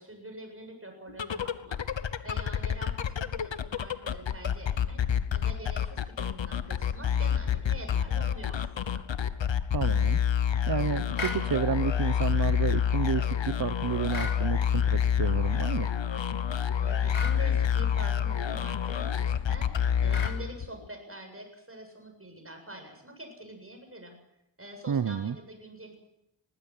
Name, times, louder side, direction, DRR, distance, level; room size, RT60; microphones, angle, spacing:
voice 1, 0.0-1.8 2.2-5.0 5.3-9.0 16.8-24.2 24.6-26.0, right 1 dB, 30° right, 4 dB, 7.8 m, -45 dB
sound 1, 1.1-20.8, left 8 dB, 70° left, 1.1 m, -28 dB
voice 2, 9.7-10.2 10.7-15.9 24.9-25.4, right 7 dB, 50° right, 14 dB, 0.8 m, -30 dB
sound 2, 11.2-11.4 14.1-14.4 17.1-17.4 20.1-20.4, left 4 dB, 90° left, 3.0 m, -35 dB
21.0 x 15.5 x 9.8 m, 0.83 s
wide cardioid pair, 70°, 47 cm